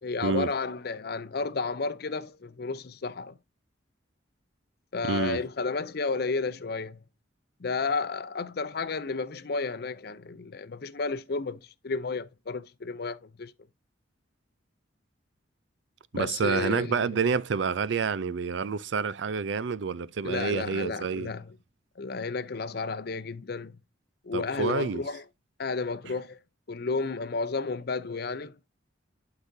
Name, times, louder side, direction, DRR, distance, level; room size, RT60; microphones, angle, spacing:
voice 1, 0.0-3.4 4.9-7.0 7.6-13.5 16.1-17.2 20.2-21.6 22.0-23.8 24.2-25.2 25.6-26.4 26.7-28.6, left 4 dB, 55° left, 0.6 m, -32 dB
voice 2, 5.0-5.4 16.1-21.3 24.3-25.0, right 5 dB, 70° right, 0.4 m, -28 dB
11.5 x 4.9 x 2.7 m
head